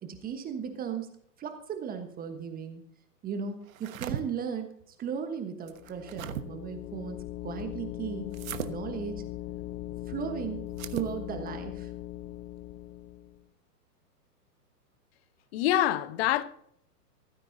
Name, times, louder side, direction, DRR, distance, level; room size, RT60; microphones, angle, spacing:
voice 1, 0.0-1.1 1.4-2.8 3.2-8.3 8.7-9.2 10.0-11.9, right 7 dB, 20° right, 1.3 m, -36 dB
sound 1, 3.7-4.2 5.7-6.4 8.3-8.7 10.7-11.1, right 10 dB, 55° right, 1.3 m, -37 dB
sound 2, 5.7-13.4, left 14 dB, 25° left, 0.7 m, -40 dB
voice 2, 15.5-16.4, left 13 dB, 40° left, 1.0 m, -25 dB
16.5 x 14.5 x 2.8 m
hypercardioid pair, 115°, 48 cm